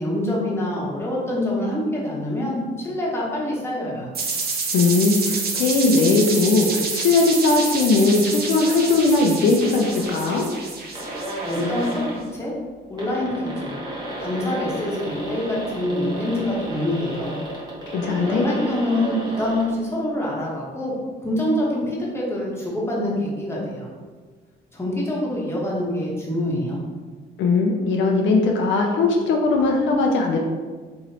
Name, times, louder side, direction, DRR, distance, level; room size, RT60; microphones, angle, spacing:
voice 1, 0.0-4.1 11.4-12.0 12.3-12.5 12.9-13.8 14.2-17.4 18.2-21.0 21.2-23.9 24.7-26.8, left 1 dB, 15° left, -5 dB, 0.9 m, -25 dB
sound 1, 4.1-11.9, right 4 dB, 50° right, 0.6 m, -28 dB
voice 2, 4.7-10.5 17.9-18.5 27.4-30.4, left 3 dB, 70° left, 1 dB, 0.4 m, -19 dB
sound 2, 9.6-10.3 10.7-10.8 10.9-12.2 12.8-19.7, right 1 dB, 20° right, 1.1 m, -32 dB
3.0 x 2.6 x 2.9 m, 1.4 s
cardioid pair, 90°, 20 cm